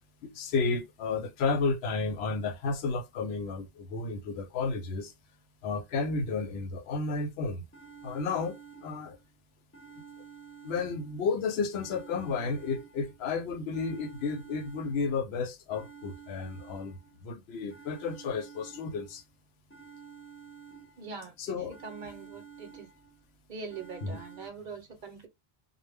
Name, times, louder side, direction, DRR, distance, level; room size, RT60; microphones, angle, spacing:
voice 1, 0.2-5.1 5.6-7.6 8.0-9.2 10.0-10.1 10.6-19.2 21.4-21.8 22.0-22.1 24.0-24.2, left 4 dB, 85° left, 0.8 m, -32 dB
sound 1, 7.3-7.4 7.7-9.3 9.7-11.3 11.7-13.3 13.7-15.3 15.7-17.3 17.7-19.3 19.7-21.3 21.7-23.3 23.7-24.5, right 6 dB, 15° left, 0.5 m, -51 dB
voice 2, 21.0-22.9 23.5-25.3, right 4 dB, 55° right, 0.8 m, -43 dB
2.1 x 2.0 x 3.3 m
omnidirectional pair, 1.0 m